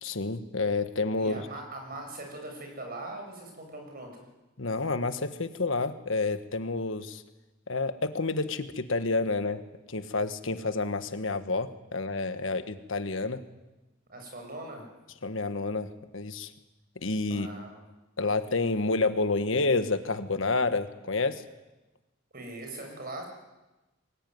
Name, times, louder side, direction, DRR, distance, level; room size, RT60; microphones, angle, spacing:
voice 1, 0.0-1.5 4.6-7.2 7.7-9.6 9.9-13.4 15.2-16.5 17.0-17.5 18.2-21.4, left 3 dB, 70° left, 10 dB, 1.5 m, -29 dB
voice 2, 1.2-4.2 14.1-14.9 17.3-17.7 22.3-23.3, right 2 dB, 50° right, 3 dB, 7.6 m, -41 dB
23.5 x 20.0 x 9.5 m, 1.1 s
head